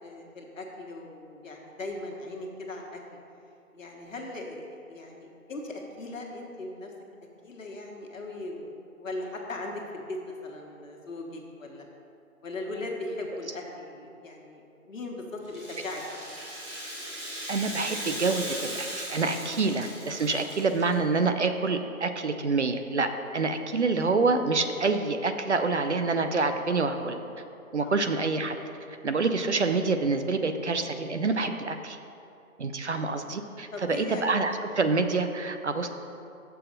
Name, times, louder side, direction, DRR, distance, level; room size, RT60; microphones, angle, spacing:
voice 1, 0.0-3.2 3.7-6.9 7.4-11.8 12.4-16.2 20.3-20.5 27.8-27.9 32.9-33.1 33.7-34.2 35.8-35.9, left 2 dB, 60° left, 0 dB, 1.4 m, -39 dB
Rattle (instrument), 15.4-20.9, right 1 dB, 20° right, 1.8 m, -38 dB
voice 2, 17.5-27.2 27.7-28.6 29.0-32.0 32.6-35.9, right 3 dB, 55° right, 8 dB, 0.5 m, -27 dB
6.9 x 4.8 x 6.5 m, 2.6 s
figure-of-eight pair, 165°, 43 cm